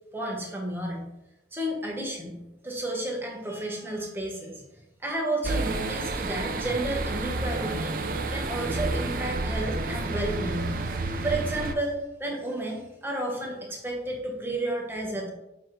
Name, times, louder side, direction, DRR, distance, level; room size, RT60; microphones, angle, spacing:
voice 1, 0.1-1.0 1.5-2.4 2.6-4.6 5.0-8.0 8.3-15.3, right 1 dB, 10° right, -1 dB, 1.0 m, -32 dB
sound 1, 5.4-11.7, right 2 dB, 50° right, 0.5 m, -30 dB
7.2 x 3.0 x 4.5 m, 0.95 s
head